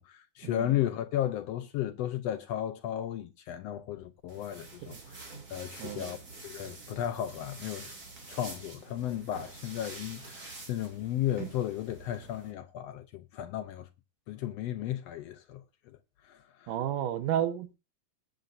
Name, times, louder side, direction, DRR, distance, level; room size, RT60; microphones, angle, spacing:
voice 1, 0.0-5.2 5.5-6.2 6.4-8.0 8.3-13.9 14.3-15.6 16.3-16.7, left 12 dB, 85° left, 1.4 m, -34 dB
sound 1, 4.3-12.5, right 3 dB, 30° right, 3.0 m, -47 dB
voice 2, 5.8-6.2 16.7-17.7, right 10 dB, 75° right, 2.7 m, -32 dB
20.5 x 7.6 x 2.6 m
omnidirectional pair, 3.8 m